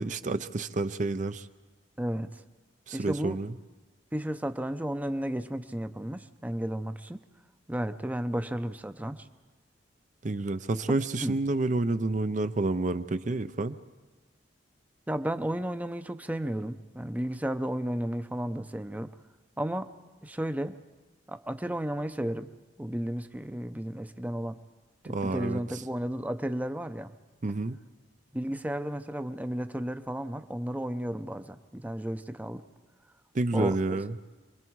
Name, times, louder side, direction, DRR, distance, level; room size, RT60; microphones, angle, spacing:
voice 1, 0.0-1.5 2.9-3.5 10.2-13.8 25.1-25.6 27.4-27.8 33.3-34.1, right 2 dB, 45° right, 11 dB, 0.6 m, -29 dB
voice 2, 2.0-2.4 2.9-3.4 4.1-7.2 7.7-9.3 11.2-11.4 15.1-19.1 19.6-19.9 20.2-20.8 21.3-22.5 22.8-24.6 25.0-27.1 28.3-32.6 33.5-34.0, right 1 dB, 10° right, 9 dB, 0.6 m, -33 dB
26.5 x 22.0 x 4.7 m, 1.2 s
head